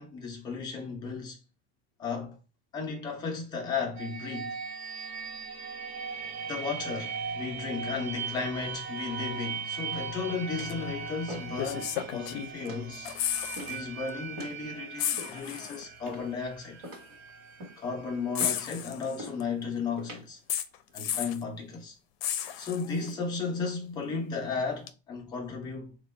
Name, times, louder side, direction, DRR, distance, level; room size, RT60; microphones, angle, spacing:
voice 1, 0.0-1.4 2.0-2.4 2.7-4.5 6.5-13.2 13.7-16.8 17.8-20.4 20.9-21.9 22.6-26.0, left 5 dB, 15° left, 0.4 m, -34 dB
sound 1, 4.0-19.6, right 5 dB, 80° right, 1.0 m, -39 dB
sound 2, 9.8-10.2 10.6-10.8 11.3-11.6 11.9-12.2 12.7-12.9 13.6-13.9 14.4-14.6 15.2-15.6 16.1-16.4 16.8-17.2 17.6-17.9 18.4-18.7 19.2-19.4 20.0-20.3 20.9-21.2, equal, 50° right, 1.2 m, -43 dB
sound 3, 10.7-10.8 11.6-12.7 12.9-13.8 14.1-14.2 15.0-15.8 16.9-17.0 18.4-19.4 20.5-21.4 22.2-23.1 24.9-25.0, left 11 dB, 75° left, 0.5 m, -33 dB
3.5 x 2.2 x 3.1 m
cardioid pair, 180°, 31 cm